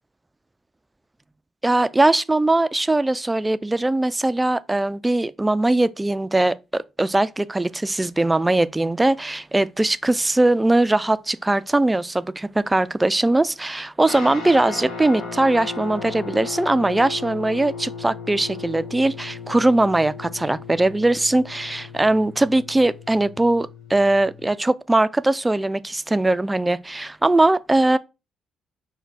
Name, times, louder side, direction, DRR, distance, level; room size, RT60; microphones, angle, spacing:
voice 1, 1.6-28.0, right 2 dB, 15° right, 0.3 m, -20 dB
sound 1, 14.0-24.5, left 5 dB, 80° left, 1.1 m, -36 dB
4.5 x 2.2 x 4.0 m
cardioid pair, 90°, 0 cm